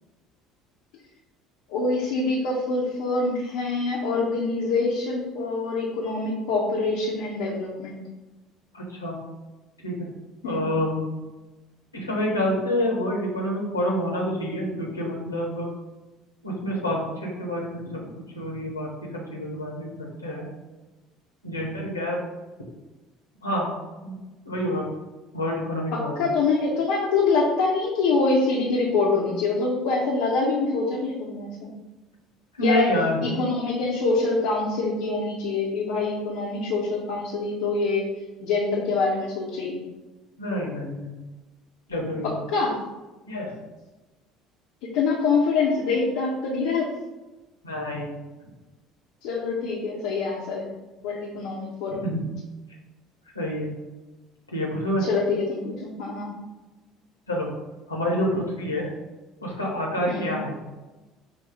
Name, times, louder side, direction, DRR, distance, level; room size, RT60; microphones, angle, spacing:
voice 1, 1.7-8.0 10.4-10.7 25.9-31.7 32.6-32.9 33.2-38.0 38.4-39.8 42.5-42.8 44.8-46.9 49.2-50.6 51.0-52.0 55.0-56.3 60.1-60.3, left 3 dB, 65° left, -5 dB, 0.9 m, -25 dB
voice 2, 8.7-9.2 9.8-10.1 10.4-11.1 11.9-15.7 16.4-20.5 21.4-22.2 23.4-23.7 24.0-24.1 24.4-24.9 25.3-26.2 32.6-33.2 40.4-41.1 41.9-42.4 43.3-43.5 47.6-48.1 52.0-52.3 53.3-53.7 54.5-55.1 57.3-57.5 57.9-58.9 59.4-60.5, left 1 dB, 90° left, -3 dB, 1.1 m, -27 dB
6.1 x 2.3 x 3.7 m, 1.1 s
figure-of-eight pair, 60°, 0 cm